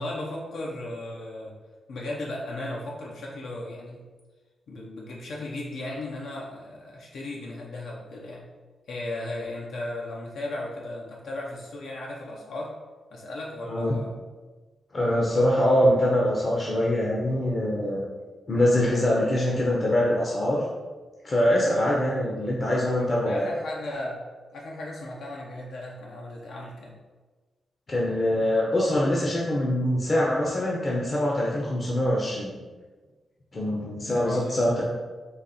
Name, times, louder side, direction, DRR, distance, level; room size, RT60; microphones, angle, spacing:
voice 1, 0.0-1.5 1.9-4.0 4.7-8.5 8.9-12.7 13.1-14.1 23.0-24.2 24.5-26.9 34.0-34.8, left 1 dB, 80° left, -3 dB, 0.7 m, -36 dB
voice 2, 14.9-18.0 18.5-20.6 21.2-23.5 27.9-32.6 33.5-34.8, left 1 dB, 30° left, -4 dB, 0.6 m, -24 dB
4.0 x 2.9 x 4.1 m, 1.3 s
wide cardioid pair, 145°, 0 cm